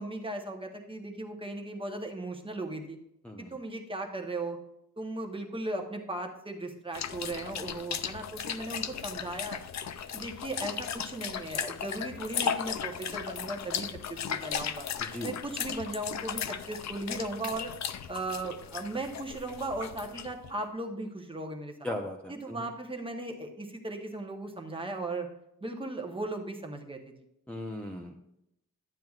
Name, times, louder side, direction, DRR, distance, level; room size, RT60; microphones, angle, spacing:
voice 1, 0.0-3.0 3.4-4.6 5.0-9.6 10.1-14.9 15.2-17.7 18.1-21.9 22.3-25.3 25.6-27.1, right 2 dB, 15° right, 3 dB, 1.0 m, -37 dB
sound 1, 6.9-20.5, left 8 dB, 55° left, 0.5 m, -36 dB
voice 2, 15.0-15.3 21.8-22.7 27.5-28.2, left 1 dB, 5° left, 0 dB, 0.6 m, -38 dB
12.0 x 9.1 x 2.4 m, 0.81 s
wide cardioid pair, 170°, 34 cm